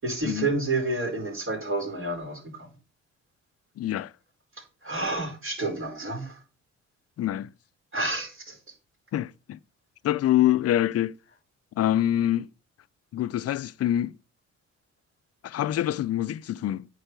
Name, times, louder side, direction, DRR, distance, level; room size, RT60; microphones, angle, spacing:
voice 1, 0.0-2.7 4.8-6.4 7.9-8.6, right 2 dB, 45° right, 4.8 m, -29 dB
voice 2, 3.8-4.1 7.2-7.5 9.1-9.6 10.0-11.2 11.8-12.5 13.1-14.2 15.4-16.9, left 12 dB, 55° left, 0.5 m, -25 dB
8.9 x 4.8 x 6.7 m
cardioid pair, 90°, 30 cm